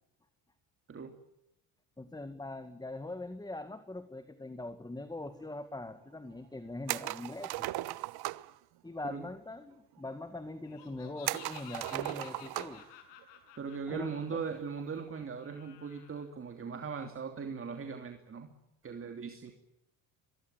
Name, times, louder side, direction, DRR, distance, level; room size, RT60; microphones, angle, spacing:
voice 1, 2.0-7.5 8.8-12.8 13.9-14.2, left 2 dB, 10° left, 10 dB, 2.0 m, -42 dB
sound 1, 6.9-8.5 11.3-12.9 13.2-13.3 14.9-15.2, right 17 dB, 65° right, 1.1 m, -37 dB
Laughter, 10.6-16.2, left 9 dB, 80° left, 7.0 m, -53 dB
voice 2, 13.6-18.5 18.8-19.5, right 5 dB, 30° right, 6 dB, 3.0 m, -39 dB
24.0 x 22.5 x 9.0 m, 0.86 s
supercardioid pair, 95°, 41 cm